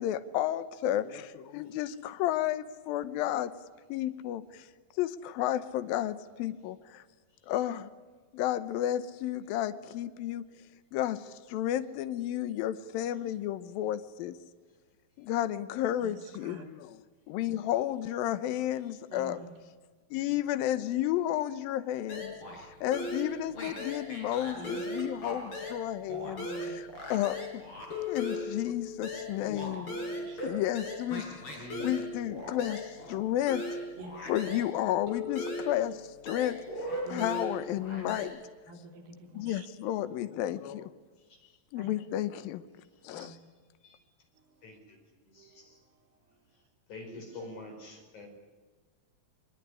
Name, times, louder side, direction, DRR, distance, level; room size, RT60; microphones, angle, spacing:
voice 1, 0.0-3.5 3.9-4.7 5.0-7.0 7.5-7.9 8.3-10.5 10.9-14.4 15.2-17.0 17.3-19.4 20.1-22.3 22.8-26.5 27.1-27.6 28.1-33.6 34.3-36.6 37.1-38.4 39.3-40.9 41.7-42.6 43.0-43.3, left 12 dB, 80° left, 12 dB, 2.7 m, -32 dB
voice 2, 19.1-19.5 24.5-24.8 26.4-26.7 30.3-30.4 34.0-34.3 37.0-37.2 37.9-38.1 38.7-39.7 41.8-41.9 43.1-43.3 45.4-45.9, right 1 dB, 80° right, 5 dB, 5.1 m, -47 dB
sound 1, 22.1-22.7 22.9-25.8 26.1-34.7 35.1-38.2, left 1 dB, 35° left, 6.8 m, -38 dB
voice 3, 31.6-31.9 43.8-44.0 44.6-44.8 45.3-45.7 46.9-48.3, left 2 dB, 55° left, 4 dB, 6.0 m, -45 dB
23.5 x 22.5 x 9.8 m, 1.4 s
omnidirectional pair, 4.1 m